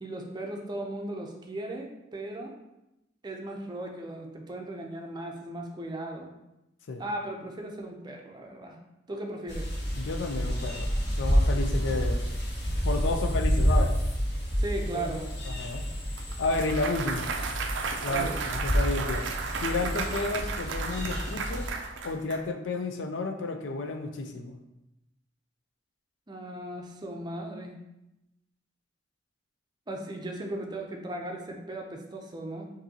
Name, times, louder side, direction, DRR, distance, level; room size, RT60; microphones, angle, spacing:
voice 1, 0.0-2.5 3.2-6.3 7.0-8.8 9.1-9.7 14.6-15.3 18.1-18.4 26.3-27.8 29.9-32.7, right 2 dB, 25° right, 1 dB, 0.5 m, -37 dB
sound 1, 9.5-21.7, equal, 60° left, 1.1 m, -29 dB
voice 2, 9.9-12.2 12.8-14.0 14.8-15.1 15.4-15.8 16.4-17.3 18.0-19.3 19.6-21.7 22.0-24.6, left 3 dB, 90° left, 6 dB, 0.5 m, -31 dB
Clapping / Cheering / Applause, 16.2-22.4, right 4 dB, 75° right, 0.4 m, -34 dB
5.2 x 2.7 x 2.8 m, 0.92 s
head